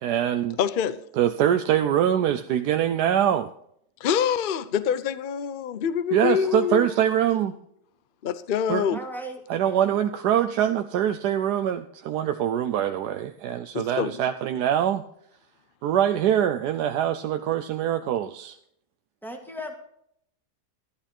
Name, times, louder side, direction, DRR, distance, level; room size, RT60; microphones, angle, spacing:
voice 1, 0.0-0.6 1.1-3.5 6.1-7.5 8.7-8.9 9.5-15.0 15.8-18.6, right 10 dB, 80° right, 1.2 m, -24 dB
voice 2, 0.6-1.0 4.0-6.9 8.2-9.0 13.7-14.2, left 8 dB, 70° left, 0.5 m, -25 dB
voice 3, 6.4-7.5 8.9-9.4 19.2-19.7, equal, ahead, 2.0 m, -38 dB
12.5 x 11.5 x 4.3 m
omnidirectional pair, 1.8 m